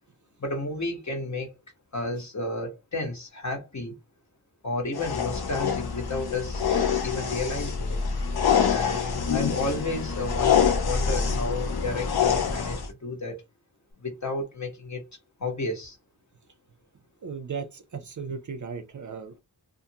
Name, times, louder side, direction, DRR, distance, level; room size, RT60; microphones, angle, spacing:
voice 1, 0.4-1.5 1.9-3.9 4.6-6.6 7.0-8.0 8.7-13.4 14.0-15.0 15.4-16.0, left 2 dB, 40° left, 1.2 m, -32 dB
sound 1, 4.9-12.9, left 7 dB, 60° left, 0.7 m, -26 dB
voice 2, 17.2-19.4, right 5 dB, 45° right, 0.5 m, -36 dB
2.5 x 2.4 x 2.8 m
cardioid pair, 55°, 43 cm